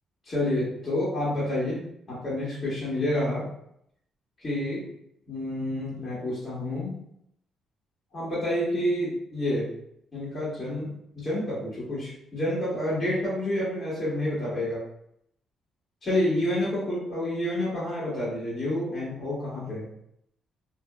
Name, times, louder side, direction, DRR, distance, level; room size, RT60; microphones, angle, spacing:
voice 1, 0.3-1.8 2.1-3.5 4.4-4.8 5.3-6.9 8.1-9.7 10.1-14.8 16.0-19.9, left 1 dB, 40° left, -10 dB, 1.3 m, -29 dB
2.9 x 2.5 x 2.3 m, 0.74 s
cardioid pair, 90°, 0 cm